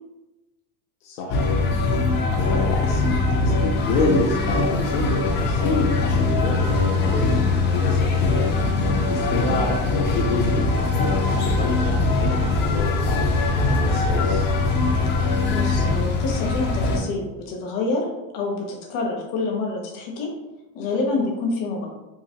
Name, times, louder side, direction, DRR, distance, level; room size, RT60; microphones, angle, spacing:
voice 1, 1.0-1.5 2.3-8.5 9.1-14.5 16.4-16.5 16.9-17.0, left 2 dB, 85° left, -1 dB, 0.7 m, -28 dB
sound 1, 1.3-17.0, left 3 dB, 30° left, 0.4 m, -22 dB
voice 2, 8.6-8.9 9.3-9.6 15.5-18.1 18.3-20.3 20.7-21.9, left 3 dB, 55° left, -1 dB, 1.1 m, -27 dB
3.9 x 2.7 x 2.8 m, 1.0 s
supercardioid pair, 150°, 41 cm